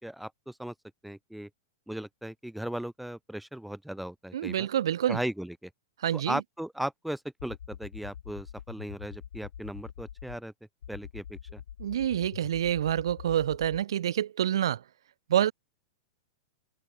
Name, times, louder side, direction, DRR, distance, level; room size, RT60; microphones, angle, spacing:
voice 1, 0.0-0.7 1.0-1.5 1.9-4.7 5.1-5.7 6.1-10.5 10.9-11.6, right 1 dB, ahead, 4.2 m, -37 dB
voice 2, 4.3-5.2 6.0-6.4 11.8-14.8 15.3-15.5, right 10 dB, 80° right, 0.3 m, -27 dB
sound 1, 7.4-10.4 10.8-13.8, left 9 dB, 80° left, 4.1 m, -44 dB
open air
hypercardioid pair, 115°, 2 cm